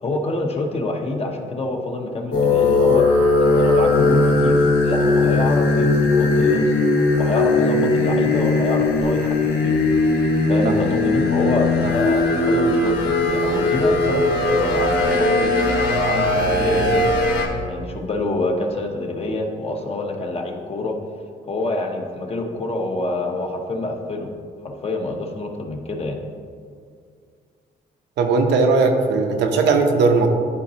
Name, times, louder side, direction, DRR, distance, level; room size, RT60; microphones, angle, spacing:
voice 1, 0.0-3.0 3.4-6.8 7.2-9.8 10.5-15.6 16.0-17.1 17.7-21.0 21.5-24.3 24.6-26.2, left 2 dB, 35° left, 2 dB, 0.9 m, -26 dB
sound 1, 2.3-17.5, left 2 dB, 75° left, 1.2 m, -18 dB
voice 2, 28.2-30.3, right 4 dB, 85° right, 4 dB, 0.8 m, -18 dB
12.0 x 4.1 x 2.8 m, 2.2 s
cardioid pair, 120°, 18 cm